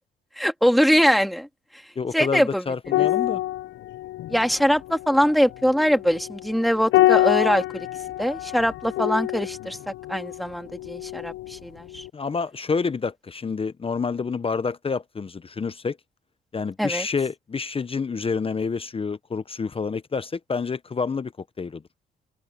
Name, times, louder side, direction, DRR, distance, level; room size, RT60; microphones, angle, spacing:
voice 1, 0.4-1.5 2.1-2.6 4.3-7.9 8.2-9.8 10.1-12.0 16.8-17.1, equal, ahead, 2.4 m, -22 dB
voice 2, 2.0-3.4 12.1-16.0 16.5-21.3 21.6-21.8, left 5 dB, 30° left, 0.8 m, -28 dB
sound 1, 2.8-11.6 11.9-12.1, left 15 dB, 75° left, 0.6 m, -26 dB
open air
cardioid pair, 90°, 20 cm